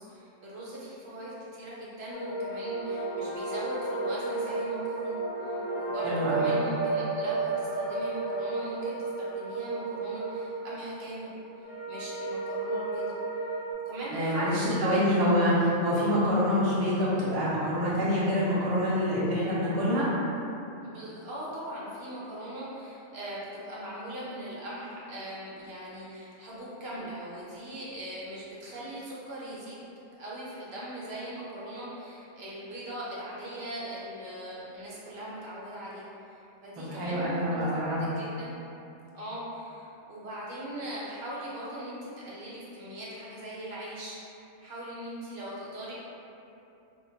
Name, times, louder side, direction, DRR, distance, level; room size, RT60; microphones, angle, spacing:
voice 1, 0.0-13.6 13.9-15.2 20.8-29.8 30.1-38.6 39.1-45.9, right 1 dB, 65° right, -7 dB, 0.8 m, -40 dB
sound 1, 2.1-13.7, right 3 dB, 60° left, 0.8 m, -32 dB
voice 2, 6.0-6.5 14.1-20.1 36.8-38.0, equal, 25° right, -9 dB, 0.5 m, -26 dB
2.2 x 2.1 x 3.8 m, 2.7 s
omnidirectional pair, 1.2 m